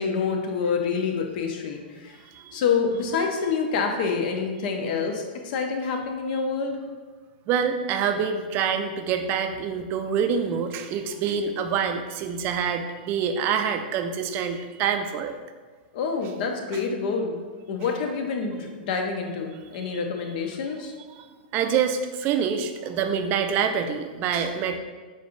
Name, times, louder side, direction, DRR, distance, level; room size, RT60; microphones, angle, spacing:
voice 1, 0.0-2.2 2.5-6.8 15.9-17.4 17.7-20.9, left 5 dB, 55° left, 3 dB, 0.8 m, -27 dB
voice 2, 7.5-15.4 21.1-21.2 21.5-24.8, right 7 dB, 35° right, 6 dB, 0.4 m, -26 dB
5.3 x 3.8 x 2.6 m, 1.4 s
hypercardioid pair, 130°, 6 cm